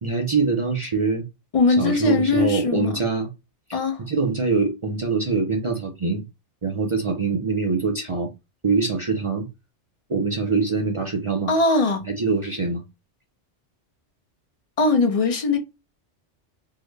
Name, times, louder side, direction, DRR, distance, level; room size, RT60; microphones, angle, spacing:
voice 1, 0.0-1.2 1.8-3.3 3.7-6.2 6.6-8.3 8.6-9.5 10.1-11.5 12.1-12.8, right 4 dB, 50° right, 0.4 m, -24 dB
voice 2, 1.5-2.9 3.7-4.0 11.5-12.0 14.8-15.6, left 3 dB, 40° left, 0.5 m, -20 dB
3.6 x 2.1 x 3.1 m
omnidirectional pair, 1.2 m